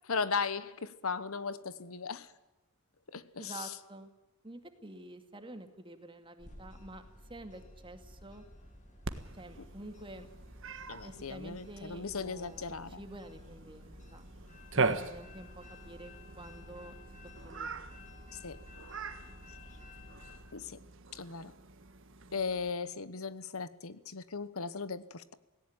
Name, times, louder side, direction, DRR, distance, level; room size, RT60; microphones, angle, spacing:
voice 1, 0.1-2.3 3.1-3.7 10.9-13.0 18.4-18.6 20.5-20.8 21.1-21.5 22.3-25.3, left 5 dB, 80° left, 15 dB, 1.1 m, -37 dB
voice 2, 3.4-4.1 4.4-7.0 7.3-8.4 9.3-10.3 11.0-14.3 14.7-16.9 17.4-18.1, right 1 dB, 25° right, 7 dB, 2.3 m, -48 dB
sound 1, 6.4-20.4, left 1 dB, 35° left, 7.6 m, -53 dB
Cat, 9.0-22.7, right 4 dB, 60° right, 1.5 m, -41 dB
18.5 x 17.5 x 9.0 m, 1.0 s
head